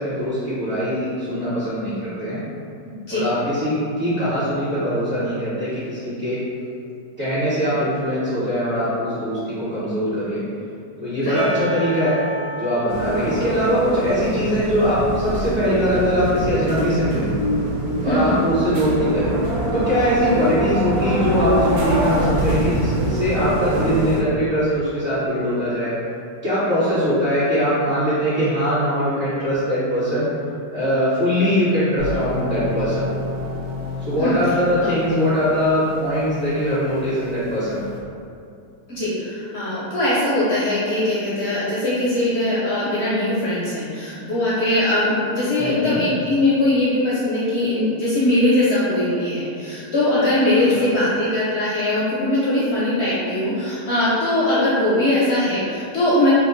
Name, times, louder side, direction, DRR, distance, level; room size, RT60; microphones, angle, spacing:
voice 1, 0.0-2.4 3.1-6.4 7.2-10.4 11.0-12.2 12.6-17.3 18.0-19.3 19.7-25.9 26.4-30.3 30.7-33.1 34.0-37.8 45.6-46.0 50.7-50.8, equal, 50° right, -14 dB, 1.1 m, -21 dB
Percussion / Church bell, 11.3-16.4, equal, 30° right, 0.7 m, -35 dB
sound 1, 12.9-24.2, right 1 dB, 70° right, 1.1 m, -24 dB
voice 2, 18.1-18.4 20.2-20.3 34.2-34.3 34.8-34.9 38.9-56.3, left 1 dB, 65° left, -9 dB, 0.6 m, -21 dB
sound 2, 32.0-38.0, left 2 dB, 90° right, 1.2 m, -31 dB
2.8 x 2.2 x 3.7 m, 2.6 s
omnidirectional pair, 1.8 m